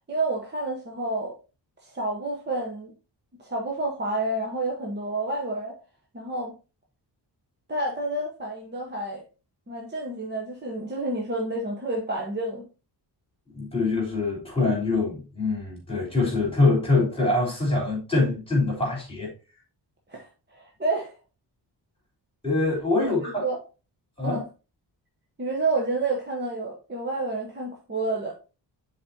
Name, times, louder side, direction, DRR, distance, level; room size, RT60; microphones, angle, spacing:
voice 1, 0.1-1.3 1.8-2.9 3.4-5.7 6.1-6.5 7.7-9.2 9.7-12.6 20.1-21.1 23.0-23.6 24.2-24.4 25.4-28.4, right 2 dB, 25° right, 1.0 m, -29 dB
voice 2, 13.5-19.3 22.4-23.4 24.2-24.4, left 3 dB, 15° left, 3.4 m, -24 dB
10.5 x 4.3 x 2.7 m
wide cardioid pair, 180°, 42 cm